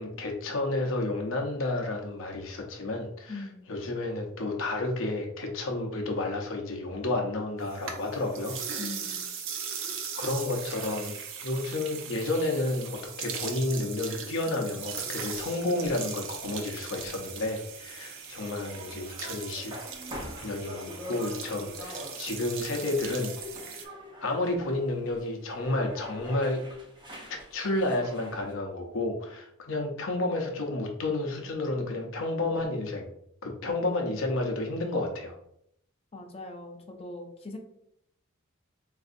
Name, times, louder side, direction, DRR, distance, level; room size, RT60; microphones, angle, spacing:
voice 1, 0.0-8.6 9.7-11.1 11.4-19.7 20.4-23.9 24.2-26.6 27.5-33.1 33.4-35.4, left 2 dB, 70° left, 2 dB, 0.6 m, -31 dB
voice 2, 3.3-3.7 8.8-9.2 36.1-37.6, left 2 dB, 30° left, 3 dB, 0.5 m, -41 dB
sound 1, 7.6-23.8, right 7 dB, 65° right, 0.5 m, -39 dB
sound 2, 15.3-28.5, equal, 20° right, 0.7 m, -45 dB
4.0 x 2.6 x 2.5 m, 0.72 s
head